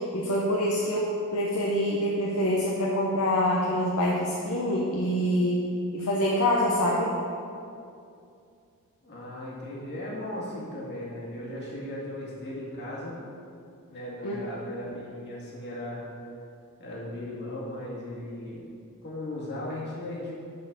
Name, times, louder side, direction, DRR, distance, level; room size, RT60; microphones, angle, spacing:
voice 1, 0.0-5.7 5.9-7.1 14.2-14.4, equal, 70° left, -4 dB, 0.9 m, -26 dB
voice 2, 9.0-13.2 13.9-16.0 16.8-18.7 19.0-20.3, left 1 dB, 50° left, -5 dB, 2.1 m, -37 dB
8.3 x 4.5 x 6.2 m, 2.5 s
head